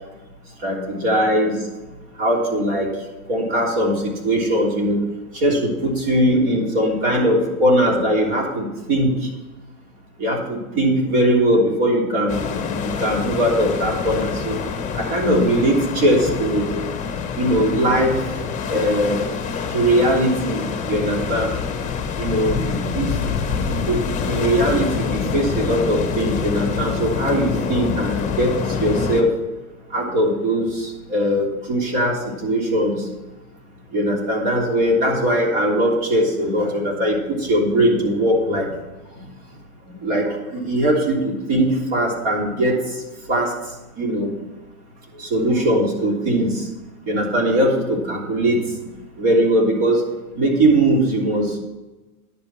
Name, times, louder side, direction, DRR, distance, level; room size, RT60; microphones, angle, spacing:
voice 1, 0.6-1.6 2.2-2.9 3.3-5.0 5.4-9.1 10.2-14.6 15.0-16.9 17.4-18.2 18.7-19.2 19.7-21.5 22.2-23.1 23.7-28.5 28.8-29.3 29.9-30.7 31.1-32.2 32.4-33.0 33.9-37.2 37.5-38.7 40.0-40.3 40.5-42.7 43.3-43.5 44.0-44.3 45.3-46.5 47.1-48.6 49.2-50.0 50.4-51.6, right 1 dB, 45° right, -1 dB, 3.4 m, -20 dB
sound 1, 12.3-29.2, left 6 dB, 15° left, 1.1 m, -26 dB
10.5 x 5.3 x 7.5 m, 1.1 s
hypercardioid pair, 140°, 45 cm